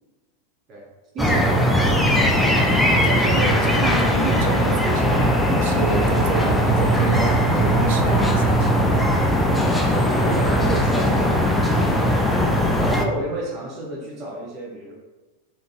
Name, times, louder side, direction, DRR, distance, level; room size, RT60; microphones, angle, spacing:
voice 1, 1.1-1.7 7.1-7.4 9.5-11.7 12.7-14.9, right 1 dB, 35° right, -4 dB, 0.9 m, -31 dB
sound 1, 1.2-13.1, equal, 5° left, 0.4 m, -19 dB
voice 2, 3.0-7.3 7.5-9.0, right 5 dB, 50° right, 5 dB, 0.5 m, -30 dB
3.7 x 2.7 x 3.5 m, 1.2 s
figure-of-eight pair, 90°, 0 cm